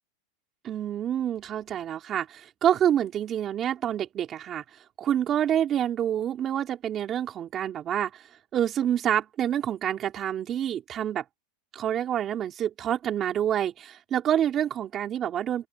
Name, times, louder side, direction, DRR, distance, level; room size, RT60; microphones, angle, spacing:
voice 1, 0.6-4.6 5.0-8.3 8.5-11.2 11.7-15.7, right 10 dB, 30° right, 3.9 m, -27 dB
open air
supercardioid pair, 135°, 0 cm